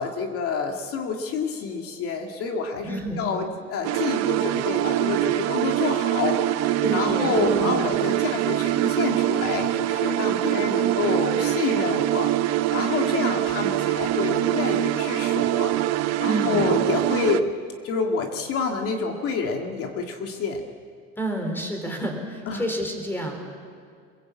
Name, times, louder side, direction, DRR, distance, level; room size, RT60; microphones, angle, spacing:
voice 1, 0.0-12.3 12.7-15.8 16.2-17.5 17.8-20.6 22.5-22.6, left 5 dB, 50° left, 3 dB, 2.4 m, -28 dB
voice 2, 2.8-3.3 6.8-7.7 16.2-16.6 21.2-23.5, equal, 5° left, 4 dB, 3.8 m, -29 dB
sound 1, 3.8-17.4, right 14 dB, 60° right, 0.9 m, -24 dB
23.0 x 22.0 x 8.5 m, 2.2 s
cardioid pair, 160°, 30 cm